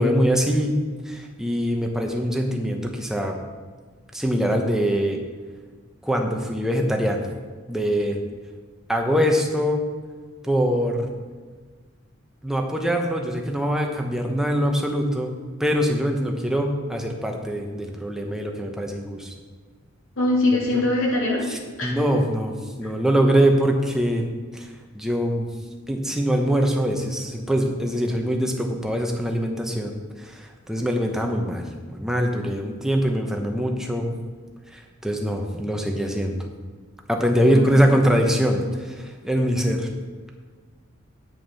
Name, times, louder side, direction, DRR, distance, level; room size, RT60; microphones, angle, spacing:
voice 1, 0.0-3.3 4.1-5.2 6.0-7.2 7.7-8.2 8.9-9.9 10.4-11.1 12.4-15.3 15.6-19.3 21.5-24.3 24.5-25.5 25.9-34.1 34.7-36.4 37.1-39.9, equal, 5° right, 2 dB, 1.0 m, -23 dB
voice 2, 20.2-21.4 21.8-22.0 37.5-37.8, left 2 dB, 85° left, -4 dB, 2.9 m, -22 dB
9.0 x 6.4 x 5.6 m, 1.5 s
head